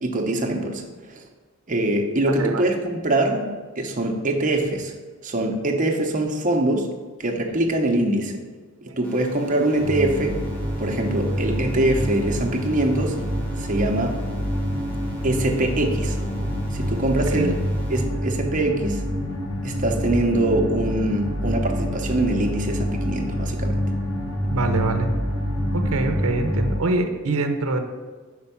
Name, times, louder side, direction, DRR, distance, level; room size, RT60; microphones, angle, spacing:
voice 1, 0.0-0.8 1.1-1.2 1.7-4.9 5.2-6.9 7.2-8.4 8.8-10.4 10.8-13.2 13.6-14.2 15.2-16.2 16.7-17.6 17.9-19.1 19.6-23.8, right 1 dB, 40° right, 2 dB, 0.8 m, -23 dB
voice 2, 2.3-2.6 17.3-17.5 24.5-25.1 25.7-27.8, right 2 dB, 80° right, 6 dB, 0.6 m, -24 dB
sound 1, 9.0-18.0, left 1 dB, 5° left, 1.0 m, -43 dB
sound 2, 9.8-26.8, equal, 75° left, 1.2 m, -26 dB
5.6 x 4.5 x 5.6 m, 1.4 s
head